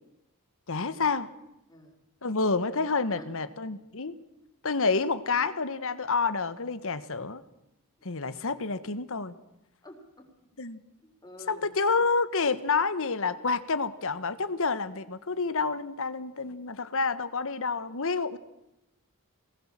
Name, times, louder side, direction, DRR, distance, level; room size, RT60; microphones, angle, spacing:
voice 1, 0.7-1.3 2.2-4.1 4.6-7.4 8.0-9.3 10.6-10.8 11.5-18.4, left 4 dB, 65° left, 13 dB, 1.3 m, -28 dB
voice 2, 9.8-10.5 11.0-11.7, left 1 dB, 20° left, 2 dB, 4.3 m, -49 dB
23.0 x 19.5 x 7.6 m, 0.89 s
head